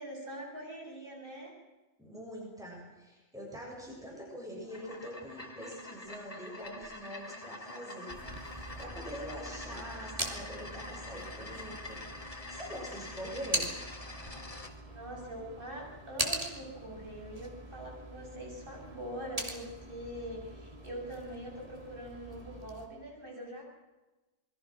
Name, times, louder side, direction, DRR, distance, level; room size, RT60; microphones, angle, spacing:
voice 1, 0.0-1.5 14.9-23.7, right 1 dB, 50° right, -1 dB, 7.7 m, -43 dB
voice 2, 2.0-13.7, equal, 5° right, -2 dB, 7.3 m, -44 dB
sound 1, 4.6-14.7, left 2 dB, 30° left, 2.2 m, -46 dB
sound 2, 8.1-22.9, right 1 dB, 30° right, 3.0 m, -42 dB
27.0 x 21.5 x 6.4 m, 1.1 s
omnidirectional pair, 1.2 m